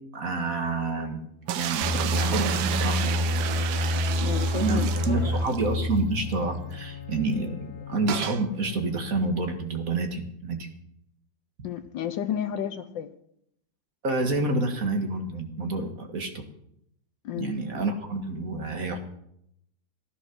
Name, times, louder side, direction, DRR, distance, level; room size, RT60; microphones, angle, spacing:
voice 1, 0.1-1.2 1.5-3.2 4.6-10.7 14.0-16.4 17.4-19.0, right 2 dB, 50° right, 2.1 m, -28 dB
sound 1, 1.5-5.7 6.0-6.1 6.3-6.4 8.1-8.4, right 10 dB, 85° right, 1.5 m, -31 dB
sound 2, 1.8-7.2 7.5-7.8, left 1 dB, 30° right, 6.3 m, -28 dB
voice 2, 4.2-5.2 11.6-13.1 17.2-17.5, left 9 dB, 75° left, 1.4 m, -32 dB
Bowed string instrument, 5.9-9.6, left 10 dB, 55° left, 1.3 m, -43 dB
16.0 x 11.0 x 6.2 m
omnidirectional pair, 2.1 m